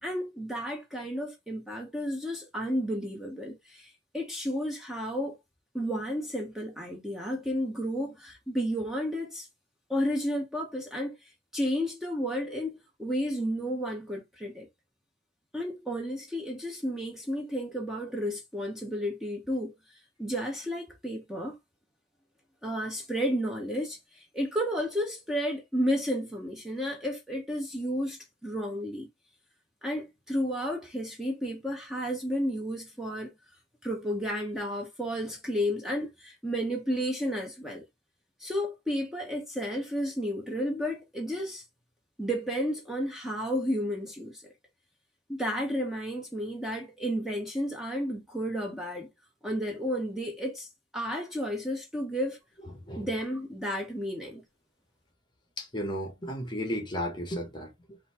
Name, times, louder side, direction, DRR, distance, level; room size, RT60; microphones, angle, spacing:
voice 1, 0.0-5.4 5.7-9.5 9.9-11.2 11.5-14.7 15.5-19.7 20.2-21.6 22.6-29.1 29.8-33.3 33.8-37.8 38.4-41.6 42.2-44.5 45.3-49.1 49.4-50.7 50.9-52.4 53.0-54.4, equal, 5° right, 1.0 m, -32 dB
voice 2, 52.6-53.1 55.6-58.0, equal, 25° left, 1.3 m, -34 dB
3.9 x 2.7 x 4.3 m
head